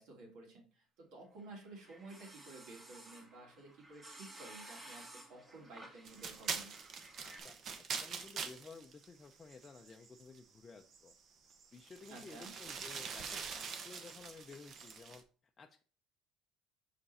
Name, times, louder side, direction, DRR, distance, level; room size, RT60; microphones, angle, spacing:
voice 1, 0.0-6.7 12.1-12.5, right 2 dB, 75° right, -1 dB, 2.9 m, -53 dB
sound 1, 1.4-7.4, right 1 dB, 25° right, 2.0 m, -55 dB
sound 2, 6.0-10.4 10.9-11.1 11.5-15.2, right 6 dB, 45° right, 1.0 m, -44 dB
voice 2, 7.2-11.1 11.7-15.8, left 4 dB, 25° left, 3 dB, 0.5 m, -55 dB
5.9 x 5.4 x 4.2 m, 0.41 s
cardioid pair, 115°, 0 cm